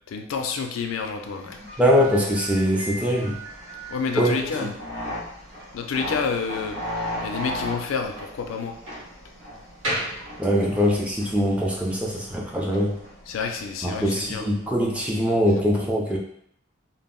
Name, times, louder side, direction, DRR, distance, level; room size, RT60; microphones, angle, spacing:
voice 1, 0.1-1.6 3.9-4.7 5.7-6.8 7.2-8.8 13.3-14.5, left 5 dB, 80° left, 5 dB, 0.3 m, -29 dB
sound 1, 1.1-15.0, left 1 dB, 50° right, 0.8 m, -38 dB
Slam, 1.7-11.0, right 1 dB, 85° right, 1.0 m, -38 dB
voice 2, 1.8-3.4 4.1-4.4 4.6-4.7 10.4-13.0 13.8-16.2, equal, 5° right, -3 dB, 0.4 m, -22 dB
2.1 x 2.0 x 3.5 m, 0.71 s
head